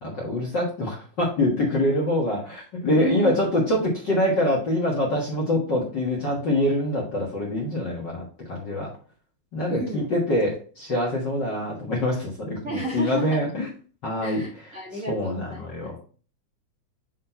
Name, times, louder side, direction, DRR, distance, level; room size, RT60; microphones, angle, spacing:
voice 1, 0.0-8.9 9.5-13.7 14.0-14.4 15.1-16.0, left 1 dB, 45° left, -3 dB, 1.7 m, -25 dB
voice 2, 3.0-3.4 9.7-10.1 12.6-13.4 14.2-15.9, right 2 dB, 35° right, -5 dB, 1.4 m, -31 dB
5.9 x 3.2 x 5.5 m, 0.39 s
omnidirectional pair, 3.4 m